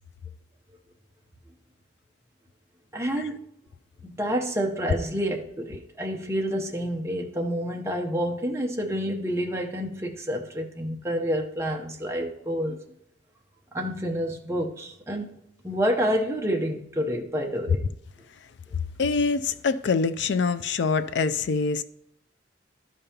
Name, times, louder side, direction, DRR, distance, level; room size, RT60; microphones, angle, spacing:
voice 1, 2.9-3.4 4.0-12.8 13.7-15.4 15.6-17.8, equal, 15° right, 0.7 m, -28 dB
voice 2, 19.0-21.8, left 4 dB, 60° left, 0.4 m, -24 dB
12.0 x 5.3 x 2.8 m
head